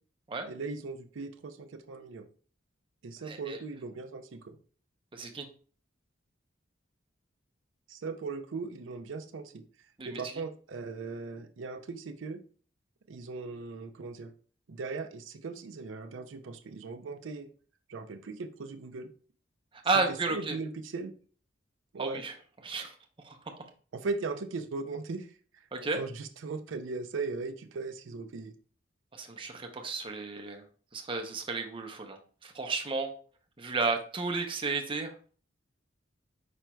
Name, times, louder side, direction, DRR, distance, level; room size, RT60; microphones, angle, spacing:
voice 1, 0.5-2.3 3.0-4.6 7.9-9.6 10.0-12.4 13.1-14.3 14.7-17.5 17.9-19.1 20.1-21.1 21.9-22.2 23.9-25.3 25.5-25.6 25.9-28.5, right 4 dB, 75° right, 7 dB, 0.5 m, -38 dB
voice 2, 3.2-3.6 5.1-5.5 10.0-10.2 19.8-20.6 22.0-22.3 22.6-22.9 23.2-23.4 25.7-26.0 29.1-30.6 30.9-33.1 33.6-35.1, right 3 dB, 25° right, 4 dB, 0.7 m, -32 dB
5.1 x 4.4 x 2.2 m, 0.41 s
head